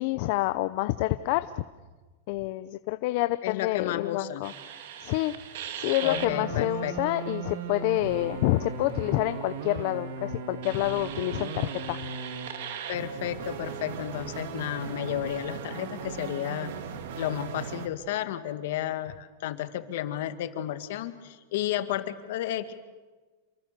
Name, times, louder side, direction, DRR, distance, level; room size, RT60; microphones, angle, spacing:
voice 1, 0.0-1.5 2.3-4.5 5.0-5.4 5.8-12.0, left 17 dB, 45° left, 12 dB, 0.7 m, -28 dB
voice 2, 3.4-4.5 6.0-6.9 12.9-16.7 17.2-22.7, left 12 dB, 60° left, 9 dB, 2.0 m, -32 dB
sound 1, 4.4-17.9, right 6 dB, 60° right, 2.3 m, -37 dB
28.0 x 23.5 x 6.8 m, 1.3 s
supercardioid pair, 170°, 0 cm